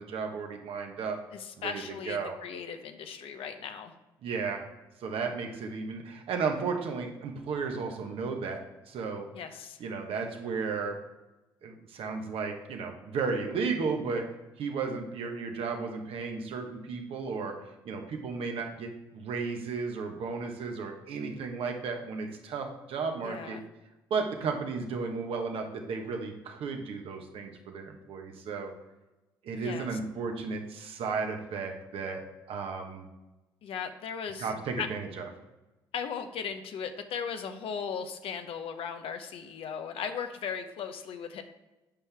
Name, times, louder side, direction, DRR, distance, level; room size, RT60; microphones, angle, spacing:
voice 1, 0.0-1.2 1.6-2.3 4.2-4.6 5.0-9.3 9.8-11.0 11.6-14.2 14.6-23.6 24.1-28.7 29.4-32.2 32.5-33.1 34.4-35.3, right 4 dB, 65° right, 3 dB, 1.3 m, -34 dB
voice 2, 1.3-3.9 9.3-9.8 23.2-23.6 29.5-29.9 33.6-34.5 34.8-34.9 35.9-41.4, left 7 dB, 65° left, 8 dB, 0.8 m, -37 dB
8.8 x 5.6 x 3.5 m, 1.1 s
hypercardioid pair, 50°, 10 cm